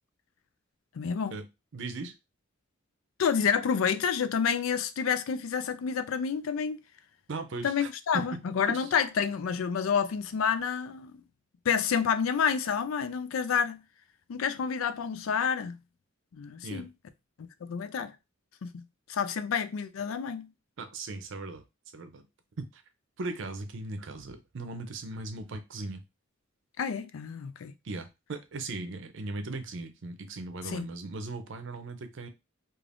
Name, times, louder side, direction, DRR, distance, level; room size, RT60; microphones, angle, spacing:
voice 1, 0.9-1.4 3.2-6.8 7.6-11.2 11.7-13.8 14.3-15.8 16.4-16.9 17.6-18.1 18.6-18.8 19.1-20.5 26.8-27.7 30.6-30.9, left 7 dB, 90° left, 0.4 m, -29 dB
voice 2, 1.7-2.1 7.3-7.9 8.1-8.4 8.7-8.8 16.6-16.9 20.8-21.6 21.9-22.2 22.6-22.8 23.2-26.0 27.8-32.3, right 3 dB, 65° right, 0.6 m, -38 dB
3.3 x 2.4 x 2.5 m
head